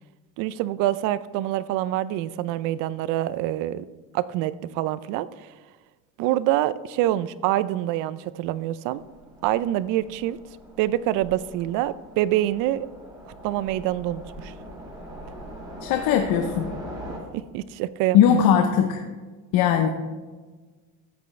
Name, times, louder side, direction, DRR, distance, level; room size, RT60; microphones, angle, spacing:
voice 1, 0.4-3.9 4.1-5.3 6.2-9.0 9.4-10.4 10.8-12.9 13.3-14.5 17.3-18.4, right 14 dB, 70° right, 17 dB, 0.5 m, -26 dB
Train, 9.0-17.2, equal, 10° right, 2.1 m, -41 dB
voice 2, 15.8-16.7 18.1-19.0 19.5-19.9, left 9 dB, 70° left, 4 dB, 0.8 m, -19 dB
13.5 x 7.8 x 3.2 m, 1.4 s
cardioid pair, 160°, 34 cm